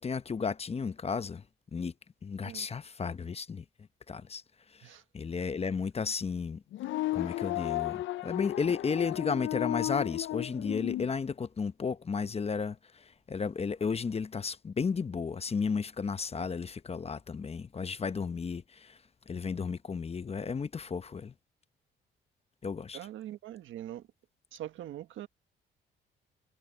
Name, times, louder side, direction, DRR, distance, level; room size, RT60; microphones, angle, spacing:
voice 1, 0.0-1.4 1.7-1.9 2.2-3.6 4.1-4.4 4.7-6.6 7.1-19.0 19.3-21.3 22.6-23.0, left 5 dB, 30° left, 0.9 m, -33 dB
sound 1, 6.7-11.1, left 16 dB, 70° left, 0.5 m, -34 dB
voice 2, 22.9-24.1 24.5-25.3, right 12 dB, 80° right, 1.4 m, -42 dB
cardioid pair, 90°, 20 cm